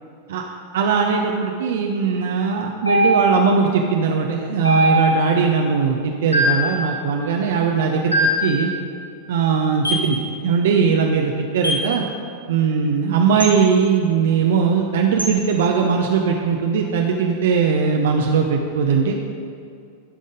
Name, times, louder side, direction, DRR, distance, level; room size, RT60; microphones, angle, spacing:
voice 1, 0.7-8.7 9.3-12.0 12.5-19.1, right 5 dB, 60° right, 1 dB, 0.6 m, -19 dB
sound 1, 2.9-3.5 4.6-5.3 6.3-6.7 8.1-8.5 9.8-10.1 11.6-11.9 13.4-13.6 15.2-15.4, right 1 dB, 85° left, 1.9 m, -19 dB
12.0 x 5.3 x 5.0 m, 2.4 s
figure-of-eight pair, 90°, 0 cm